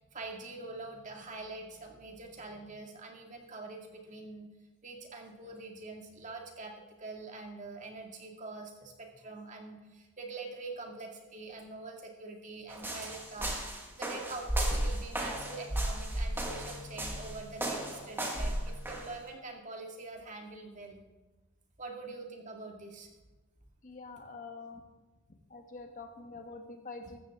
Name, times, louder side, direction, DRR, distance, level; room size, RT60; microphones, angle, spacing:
voice 1, 0.1-4.5 4.8-13.6 14.0-21.0 21.8-23.1, right 3 dB, 35° right, 1 dB, 2.1 m, -44 dB
sound 1, 12.7-19.1, right 1 dB, 10° right, 1.8 m, -34 dB
voice 2, 23.8-24.8 25.5-27.2, left 3 dB, 35° left, 5 dB, 1.3 m, -46 dB
15.5 x 13.5 x 3.6 m, 1.2 s
head